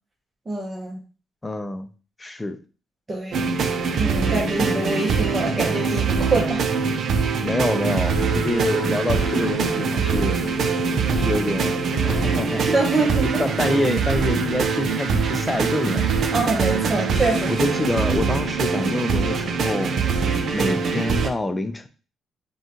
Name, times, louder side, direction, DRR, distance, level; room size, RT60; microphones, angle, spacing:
voice 1, 0.5-1.0 3.1-3.5 4.0-6.6 7.1-7.2 12.7-13.4 16.3-17.6, right 2 dB, 25° right, 0.9 m, -25 dB
voice 2, 1.4-1.9 2.2-2.6 7.4-10.4 11.1-11.7 12.0-12.7 13.4-16.0 17.5-19.9 20.5-21.9, left 2 dB, 15° left, 0.5 m, -26 dB
sound 1, 3.3-21.3, right 5 dB, 60° right, 0.6 m, -23 dB
sound 2, 8.1-20.3, left 1 dB, 80° left, 0.6 m, -36 dB
5.4 x 2.4 x 3.0 m
cardioid pair, 90°, 0 cm